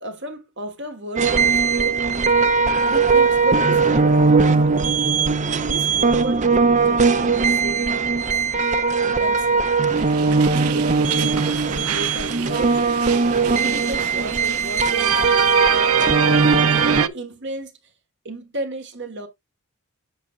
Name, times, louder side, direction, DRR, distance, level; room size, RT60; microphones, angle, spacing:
voice 1, 0.0-2.0 2.9-5.0 5.6-6.5 6.8-8.5 9.0-9.7 10.4-13.0 13.5-16.4 16.9-17.7 18.2-19.3, right 3 dB, 55° right, 1.6 m, -33 dB
sound 1, 1.2-17.0, right 4 dB, 35° right, 0.6 m, -19 dB
sound 2, 9.9-17.1, right 9 dB, 75° right, 0.6 m, -25 dB
7.9 x 6.9 x 2.5 m
head